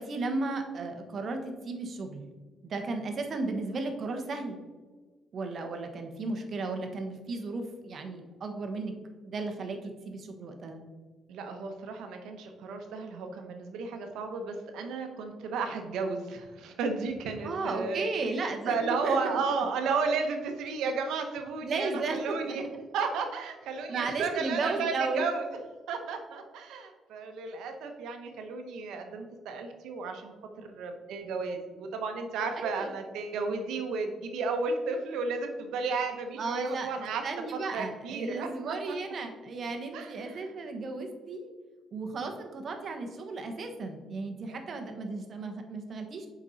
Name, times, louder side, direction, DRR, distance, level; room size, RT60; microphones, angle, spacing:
voice 1, 0.0-2.2 2.6-4.6 5.3-8.9 9.2-10.8 17.4-19.2 21.6-22.6 23.9-25.3 32.5-32.9 36.4-41.5 41.9-46.3, right 3 dB, 50° right, 4 dB, 1.2 m, -34 dB
voice 2, 11.3-18.1 18.7-22.6 22.9-25.4 25.9-37.2 37.7-38.7 39.9-40.4 44.5-44.6, right 4 dB, 85° right, 5 dB, 1.1 m, -33 dB
7.2 x 5.3 x 4.1 m, 1.4 s
cardioid pair, 90°, 0 cm